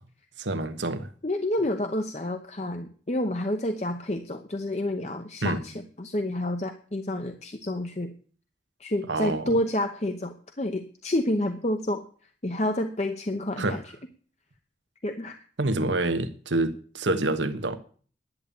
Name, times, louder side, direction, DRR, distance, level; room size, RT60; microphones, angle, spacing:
voice 1, 0.4-1.1 5.4-5.6 9.1-9.5 13.6-13.8 15.6-17.8, right 2 dB, 85° right, 1.3 m, -27 dB
voice 2, 1.2-8.1 8.8-12.0 12.4-13.8 15.0-15.4, left 1 dB, 35° left, 0.8 m, -29 dB
11.0 x 8.5 x 8.7 m
head